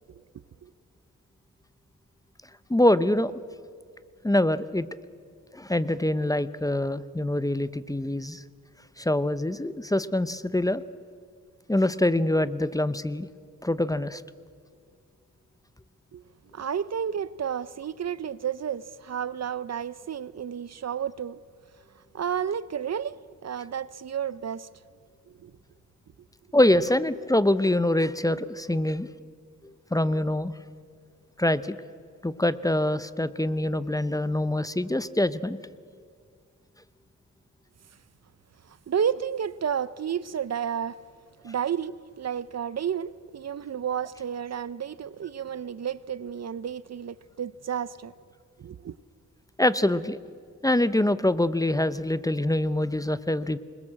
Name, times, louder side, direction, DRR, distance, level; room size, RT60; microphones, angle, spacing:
voice 1, 2.7-3.3 4.2-4.9 5.5-8.4 9.0-10.8 11.7-13.3 13.6-14.2 26.5-29.1 29.9-30.5 31.4-31.8 32.2-35.6 41.5-41.6 49.6-50.2 50.6-53.6, left 1 dB, 10° left, 0.7 m, -24 dB
voice 2, 16.5-21.4 22.1-23.2 23.4-24.7 25.3-25.5 38.6-41.0 41.4-48.1 48.6-49.0, right 8 dB, 50° right, 0.6 m, -31 dB
27.5 x 21.0 x 7.5 m
wide cardioid pair, 100°, 33 cm